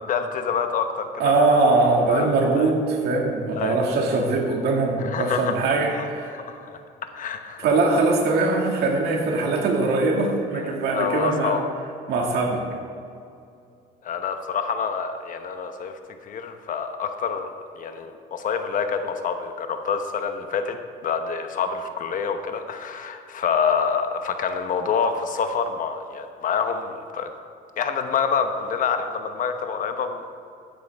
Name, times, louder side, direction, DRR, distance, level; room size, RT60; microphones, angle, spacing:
voice 1, 0.1-1.3 2.1-2.3 2.6-2.7 3.5-3.8 5.0-5.5 5.9-6.7 7.1-7.6 10.5-11.7 14.0-20.8 21.0-27.3 27.8-30.2, left 6 dB, 50° left, 7 dB, 1.0 m, -27 dB
voice 2, 1.2-6.4 7.6-11.6 12.1-12.6, right 3 dB, 75° right, 0 dB, 2.1 m, -21 dB
13.5 x 9.7 x 3.5 m, 2.5 s
cardioid pair, 110°, 17 cm